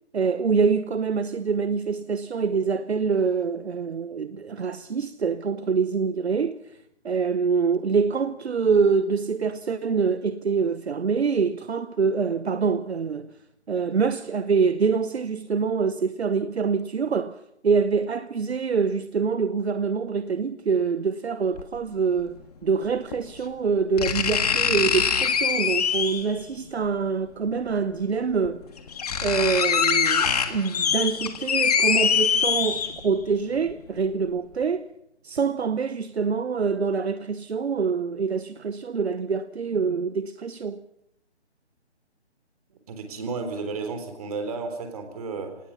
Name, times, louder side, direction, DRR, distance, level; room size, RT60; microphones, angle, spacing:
voice 1, 0.1-6.8 7.0-13.3 13.7-28.6 29.2-34.9 35.2-40.8, right 5 dB, 65° right, 0.9 m, -25 dB
sound 1, 21.6-21.7 23.1-23.2 24.0-26.4 27.7-27.8 28.4-28.5 28.8-33.2 33.6-33.7, left 7 dB, 35° left, 1.8 m, -23 dB
voice 2, 42.7-45.6, right 4 dB, 35° right, 3.7 m, -33 dB
25.5 x 18.5 x 5.8 m
figure-of-eight pair, 155°, 34 cm